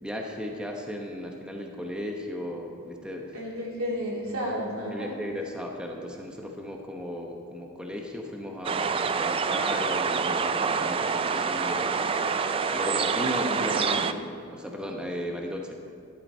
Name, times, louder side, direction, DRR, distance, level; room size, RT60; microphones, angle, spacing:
voice 1, 0.0-3.3 4.9-11.9 12.7-15.7, equal, 5° right, 1 dB, 0.9 m, -36 dB
voice 2, 3.3-5.1 13.1-13.8, equal, 85° right, -4 dB, 3.1 m, -32 dB
sound 1, 8.6-14.1, right 5 dB, 25° right, 0.3 m, -26 dB
14.0 x 12.0 x 4.3 m, 2.5 s
head